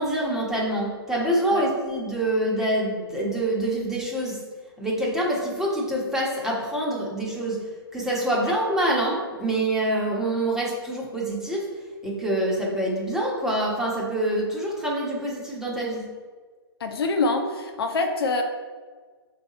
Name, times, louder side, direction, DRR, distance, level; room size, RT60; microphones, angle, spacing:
voice 1, 0.0-4.4 4.8-7.7 7.9-11.7 12.0-16.1, right 1 dB, 5° right, -4 dB, 1.3 m, -26 dB
voice 2, 16.8-18.4, left 3 dB, 65° left, 4 dB, 0.9 m, -25 dB
6.2 x 4.1 x 4.2 m, 1.5 s
hypercardioid pair, 140°, 13 cm